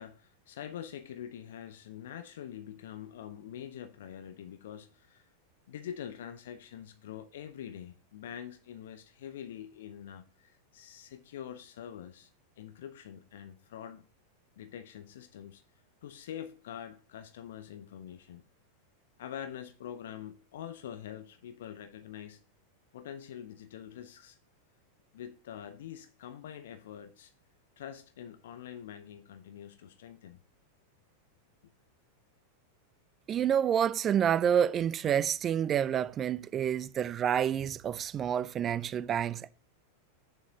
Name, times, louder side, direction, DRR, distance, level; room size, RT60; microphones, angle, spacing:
voice 1, 0.0-5.3 5.7-12.3 12.6-14.0 14.6-15.6 16.0-18.4 19.2-22.4 22.9-24.4 25.1-27.3 27.8-30.4, left 9 dB, 60° left, 0.6 m, -45 dB
voice 2, 33.3-39.5, right 9 dB, 25° right, 0.4 m, -28 dB
8.9 x 7.1 x 2.8 m
figure-of-eight pair, 90°, 0 cm